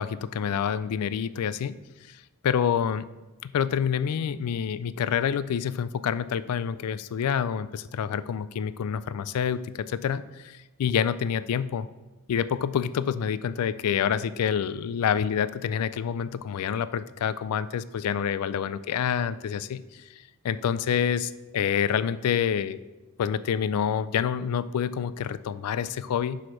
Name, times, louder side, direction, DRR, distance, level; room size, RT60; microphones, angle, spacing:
voice 1, 0.0-1.8 2.4-3.0 3.4-11.9 12.3-19.8 20.4-22.8 23.2-26.4, left 8 dB, 80° left, 15 dB, 0.3 m, -27 dB
6.1 x 4.9 x 5.7 m, 1.1 s
head